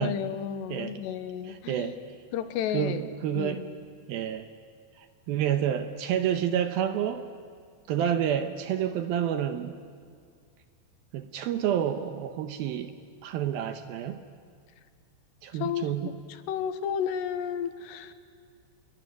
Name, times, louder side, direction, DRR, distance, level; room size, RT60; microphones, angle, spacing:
voice 1, 0.0-1.9 2.3-3.0 3.3-3.7 8.0-8.2 15.6-16.1 16.5-18.1, left 9 dB, 80° left, 10 dB, 3.2 m, -32 dB
voice 2, 0.7-1.0 1.4-2.0 2.7-3.7 4.1-4.5 5.3-7.3 7.9-9.8 11.1-12.9 13.2-14.2 15.4-16.1, right 10 dB, 75° right, 8 dB, 2.4 m, -29 dB
28.0 x 21.5 x 9.2 m, 2.1 s
omnidirectional pair, 5.0 m